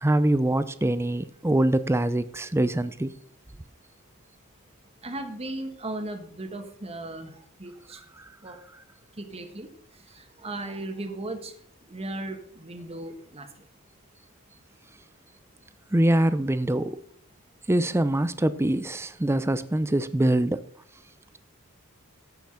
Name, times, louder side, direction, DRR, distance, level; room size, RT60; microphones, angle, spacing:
voice 1, 0.0-3.1 15.9-17.0 17.7-20.6, right 1 dB, 10° right, 0.5 m, -24 dB
voice 2, 5.0-7.3 7.6-8.0 8.4-8.5 9.2-9.7 10.4-11.5 11.9-13.5, right 2 dB, 30° right, 1.5 m, -36 dB
15.0 x 5.9 x 5.7 m
head